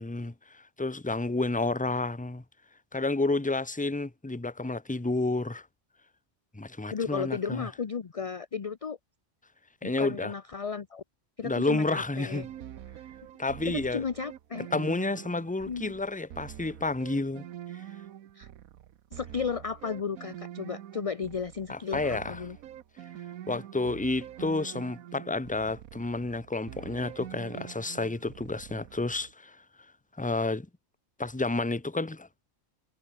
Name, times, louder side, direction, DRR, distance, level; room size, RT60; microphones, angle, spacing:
voice 1, 0.0-2.4 2.9-5.7 6.5-7.7 9.8-10.3 11.4-12.5 13.4-14.0 14.7-17.4 21.7-22.4 23.5-29.6 30.2-30.7 31.2-32.3, left 2 dB, 5° left, 0.8 m, -30 dB
voice 2, 6.9-9.0 9.8-11.0 11.4-12.4 13.7-14.7 15.6-15.9 18.4-18.5 19.1-22.6, left 6 dB, 35° left, 0.5 m, -34 dB
sound 1, 12.3-29.3, right 11 dB, 80° right, 1.3 m, -45 dB
omnidirectional pair, 1.5 m